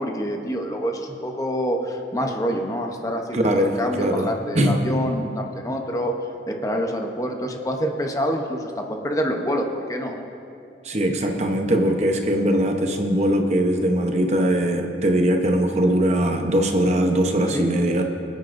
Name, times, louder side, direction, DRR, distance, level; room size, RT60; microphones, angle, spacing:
voice 1, 0.0-6.2 6.5-10.2 17.5-17.7, equal, 20° left, 2 dB, 0.8 m, -26 dB
voice 2, 3.3-4.3 4.5-4.8 10.8-18.0, right 1 dB, 40° right, 3 dB, 0.8 m, -21 dB
24.0 x 9.3 x 2.6 m, 2.7 s
head